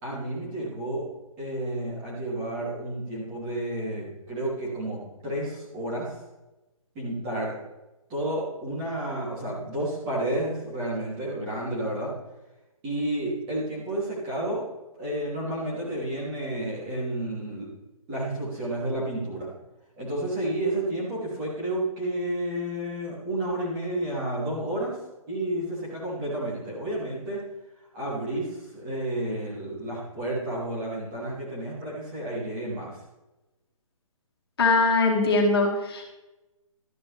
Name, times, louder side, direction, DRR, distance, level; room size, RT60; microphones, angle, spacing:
voice 1, 0.0-1.1 1.4-6.1 6.9-7.5 8.1-12.1 12.8-14.6 14.9-17.7 18.1-19.5 20.0-25.0 25.3-27.4 27.9-33.0, right 1 dB, 15° right, -7 dB, 2.9 m, -31 dB
voice 2, 34.6-36.1, left 3 dB, 45° left, 0 dB, 2.2 m, -22 dB
12.5 x 9.7 x 3.4 m, 1.0 s
hypercardioid pair, 175°, 18 cm